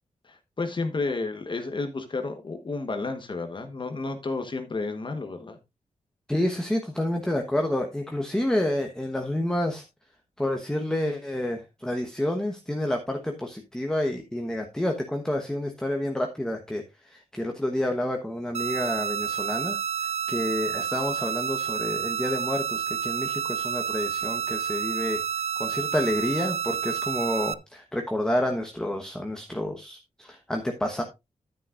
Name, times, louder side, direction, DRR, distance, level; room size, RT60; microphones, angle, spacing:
voice 1, 0.2-5.6, left 3 dB, 35° left, 1.2 m, -31 dB
voice 2, 6.3-9.8 10.4-19.8 20.3-25.2 25.6-31.0, left 1 dB, 5° left, 1.1 m, -29 dB
sound 1, 18.5-27.5, right 8 dB, 55° right, 0.5 m, -29 dB
11.0 x 9.6 x 2.5 m
wide cardioid pair, 160°, 13 cm